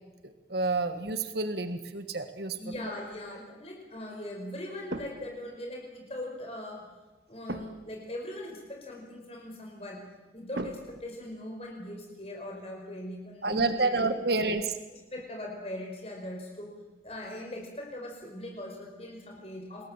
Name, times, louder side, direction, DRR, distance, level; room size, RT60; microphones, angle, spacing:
voice 1, 0.5-2.6 13.4-14.7, right 3 dB, 60° right, 8 dB, 1.7 m, -29 dB
voice 2, 2.6-6.9 7.3-10.0 10.3-14.3 14.9-16.7 17.0-19.8, left 1 dB, 35° left, 0 dB, 5.1 m, -40 dB
sound 1, 4.9-5.5 7.5-8.0 10.5-11.7 15.2-15.5, right 1 dB, 75° right, 1.9 m, -40 dB
28.5 x 21.0 x 7.4 m, 1.2 s
head